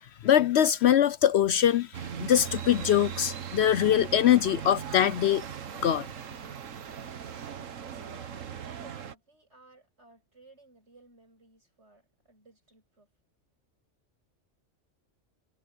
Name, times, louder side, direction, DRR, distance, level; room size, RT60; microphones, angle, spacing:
voice 1, 0.2-1.9 2.2-5.4 5.8-6.1, left 10 dB, 65° left, 0.8 m, -22 dB
sound 1, 1.9-9.1, right 8 dB, 85° right, 1.5 m, -39 dB
voice 2, 7.9-13.1, right 3 dB, 60° right, 7.7 m, -58 dB
omnidirectional pair, 1.3 m